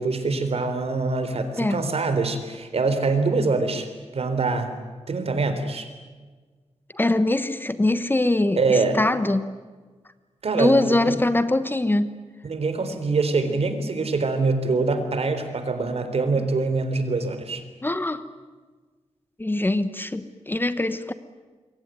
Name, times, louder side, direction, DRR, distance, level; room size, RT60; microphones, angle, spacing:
voice 1, 0.0-3.9 4.1-4.8 5.1-5.9 8.6-9.0 10.4-11.2 12.4-17.6, right 3 dB, 60° right, 9 dB, 3.8 m, -24 dB
voice 2, 6.9-9.5 10.5-12.2 17.8-18.2 19.4-21.1, left 2 dB, 20° left, 12 dB, 1.2 m, -23 dB
27.0 x 23.0 x 9.2 m, 1.4 s
wide cardioid pair, 115°, 11 cm